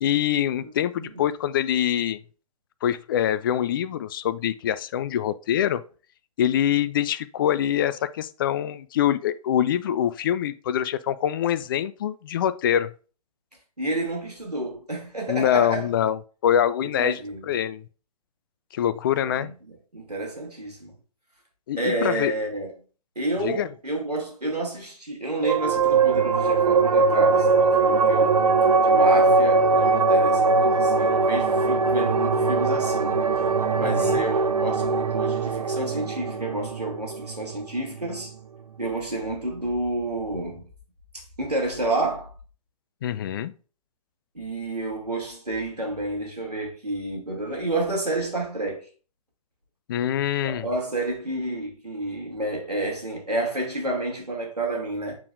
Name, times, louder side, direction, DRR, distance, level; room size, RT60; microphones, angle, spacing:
voice 1, 0.0-2.2 2.8-5.8 6.4-12.9 15.3-17.2 17.5-17.8 18.7-19.5 21.7-22.3 23.4-23.7 33.8-34.2 43.0-43.5 49.9-50.7, left 10 dB, 35° left, 0.4 m, -24 dB
voice 2, 13.8-15.9 16.8-17.5 19.2-20.9 21.8-22.7 23.2-28.4 28.8-33.3 33.8-38.3 38.8-40.6 41.1-42.3 44.3-48.9 50.4-55.2, right 2 dB, 85° right, 2.6 m, -30 dB
sound 1, 25.4-38.3, right 4 dB, 70° right, 0.7 m, -21 dB
8.3 x 4.6 x 2.5 m
figure-of-eight pair, 120°, 20 cm